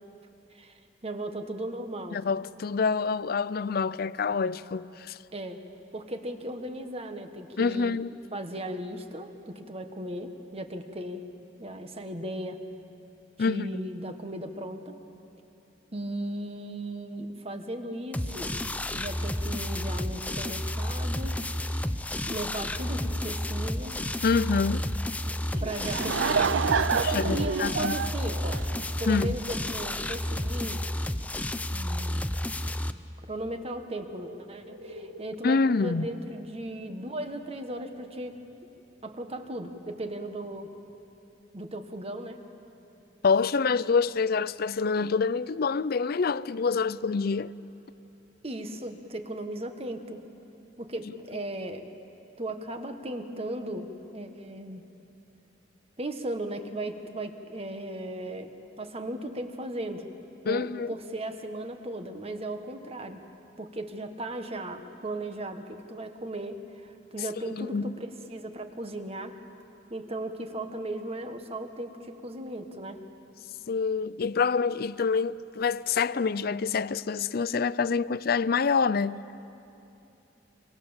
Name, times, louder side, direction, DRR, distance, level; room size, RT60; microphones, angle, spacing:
voice 1, 0.5-2.2 5.3-5.6 5.9-8.0 8.3-11.2 11.6-12.6 13.4-15.0 15.9-18.5 18.9-21.4 22.3-24.0 25.6-26.6 26.9-28.6 29.0-30.8 31.7-32.3 33.3-38.4 39.0-40.7 41.5-42.4 48.4-50.2 50.8-51.8 52.4-54.8 56.0-58.5 58.8-60.1 60.4-63.2 63.6-69.4 69.9-73.0, right 1 dB, 35° right, 1.5 m, -36 dB
voice 2, 2.1-5.2 7.6-8.1 13.4-13.6 24.2-24.9 27.0-28.0 29.1-29.4 35.4-36.1 43.2-47.5 60.5-60.9 67.5-68.0 73.7-79.2, left 5 dB, 55° left, 0.5 m, -26 dB
sound 1, 18.1-32.9, left 1 dB, 10° left, 0.6 m, -31 dB
Laughter / Crowd, 25.5-29.3, right 6 dB, 85° right, 0.6 m, -28 dB
sound 2, 33.8-38.5 38.7-39.6 39.9-40.9, equal, 70° right, 2.2 m, -49 dB
27.5 x 25.5 x 7.3 m
head